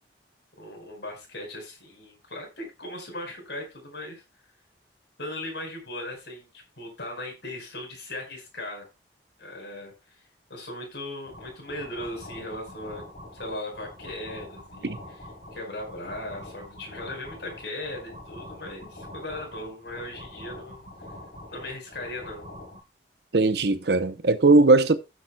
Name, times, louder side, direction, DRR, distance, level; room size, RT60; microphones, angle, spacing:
voice 1, 0.6-4.2 5.2-8.8 9.4-10.2 10.5-13.0 13.3-15.2 15.5-20.8 21.5-22.5, left 1 dB, 70° left, 4.9 m, -38 dB
sound 1, 11.2-22.8, left 1 dB, 50° left, 5.1 m, -44 dB
voice 2, 23.3-25.0, right 3 dB, 65° right, 0.8 m, -19 dB
16.0 x 7.2 x 2.3 m
head